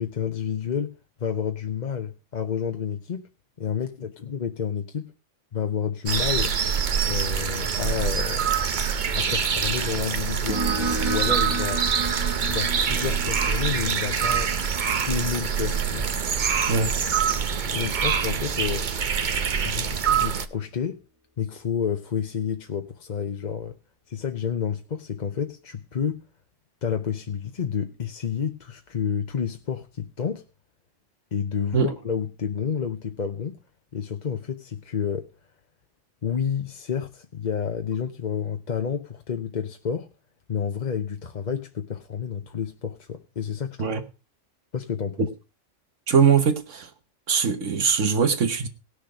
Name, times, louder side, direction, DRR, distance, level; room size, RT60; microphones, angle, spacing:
voice 1, 0.0-3.2 3.6-5.1 5.5-6.5 7.0-8.5 9.1-11.8 12.4-14.5 15.1-16.1 17.7-18.9 19.5-21.0 21.4-23.8 24.1-26.3 26.8-30.4 31.3-33.6 33.9-35.3 36.2-40.1 40.5-43.9 44.7-45.3, left 7 dB, 40° left, 0.8 m, -30 dB
sound 1, 6.1-20.5, right 7 dB, 45° right, 0.8 m, -25 dB
sound 2, 10.5-17.7, right 3 dB, 25° right, 1.8 m, -33 dB
voice 2, 46.1-46.9 47.3-48.7, right 6 dB, 75° right, 1.6 m, -21 dB
18.0 x 6.4 x 5.0 m
omnidirectional pair, 1.3 m